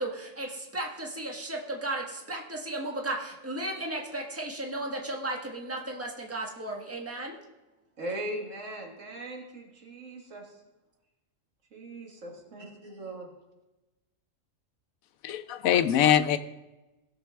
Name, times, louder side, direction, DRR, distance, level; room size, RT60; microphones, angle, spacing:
voice 1, 1.2-1.5 1.8-2.0 2.3-2.4 2.7-3.1 3.4-5.4 5.7-7.3, right 2 dB, 10° right, 0 dB, 1.3 m, -34 dB
voice 2, 8.0-10.6 11.7-13.3, right 1 dB, 65° right, 1 dB, 1.9 m, -39 dB
voice 3, 15.2-16.4, left 10 dB, 80° left, 12 dB, 1.0 m, -23 dB
16.5 x 6.7 x 3.4 m, 1.0 s
omnidirectional pair, 1.4 m